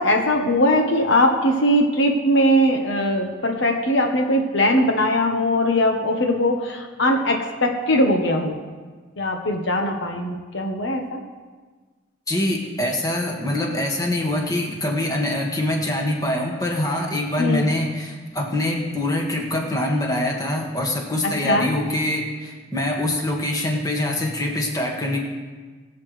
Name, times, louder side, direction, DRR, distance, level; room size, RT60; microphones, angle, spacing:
voice 1, 0.0-8.5 9.2-11.2 17.4-17.6 21.2-21.7, left 1 dB, 65° left, 2 dB, 1.2 m, -20 dB
voice 2, 12.3-25.2, left 1 dB, 20° left, -1 dB, 1.8 m, -24 dB
22.0 x 8.2 x 3.3 m, 1.4 s
head